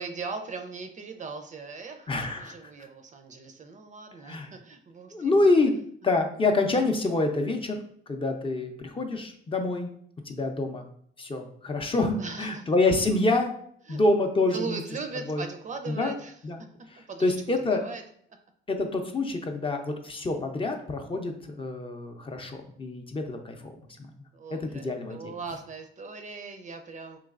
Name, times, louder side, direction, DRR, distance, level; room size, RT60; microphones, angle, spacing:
voice 1, 0.0-5.3 12.2-12.7 13.9-14.0 14.5-16.3 17.1-18.0 24.3-27.2, right 4 dB, 40° right, 6 dB, 0.4 m, -39 dB
voice 2, 2.1-2.7 4.2-4.5 5.1-5.7 6.0-7.8 8.1-9.9 10.3-10.9 11.2-13.5 13.9-14.8 15.3-15.4 15.9-16.1 16.4-16.6 16.9-17.8 18.7-23.7 24.5-25.3, left 2 dB, 25° left, 4 dB, 0.5 m, -27 dB
3.8 x 3.1 x 2.4 m, 0.64 s
cardioid pair, 90°, 20 cm